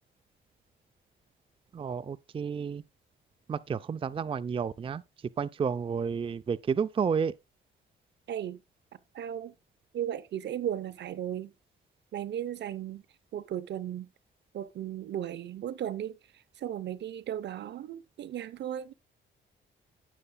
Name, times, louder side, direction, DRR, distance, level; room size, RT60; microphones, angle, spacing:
voice 1, 1.7-2.8 3.5-5.0 5.4-7.3, right 6 dB, 25° right, 0.4 m, -31 dB
voice 2, 8.3-8.6 9.1-9.5 9.9-11.5 12.1-13.0 13.3-14.1 14.5-18.9, right 10 dB, 65° right, 0.7 m, -36 dB
16.5 x 6.6 x 2.2 m
cardioid pair, 90°, 20 cm